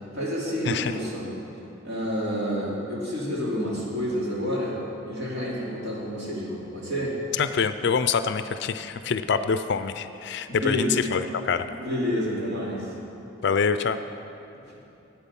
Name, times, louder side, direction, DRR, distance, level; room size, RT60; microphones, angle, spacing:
voice 1, 0.1-1.3 1.8-4.8 5.1-7.2 10.5-10.9 11.7-12.9 14.5-14.6, equal, 55° right, -5 dB, 2.7 m, -29 dB
voice 2, 7.4-11.7 13.4-14.0, left 5 dB, 55° left, 11 dB, 0.4 m, -25 dB
12.5 x 8.9 x 5.4 m, 2.9 s
head